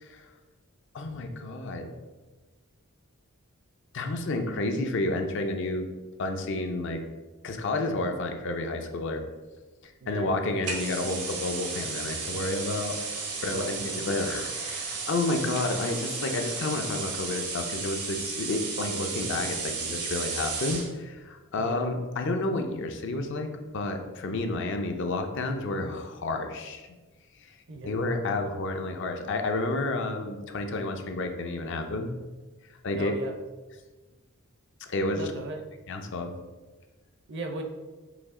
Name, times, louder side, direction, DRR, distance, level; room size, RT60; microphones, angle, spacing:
voice 1, 0.9-1.9 3.9-5.9 6.2-7.0 7.4-9.2 9.8-13.0 13.4-26.9 27.8-32.1 32.8-33.1 34.8-35.3 35.9-36.4, left 2 dB, 55° left, 5 dB, 0.5 m, -30 dB
sound 1, 10.6-20.9, right 4 dB, 85° right, 1.0 m, -34 dB
voice 2, 13.3-14.3 21.6-21.8 27.7-27.9 33.0-33.3 35.1-35.6 37.3-37.6, right 3 dB, 55° right, 5 dB, 0.6 m, -38 dB
5.1 x 2.8 x 3.6 m, 1.2 s
head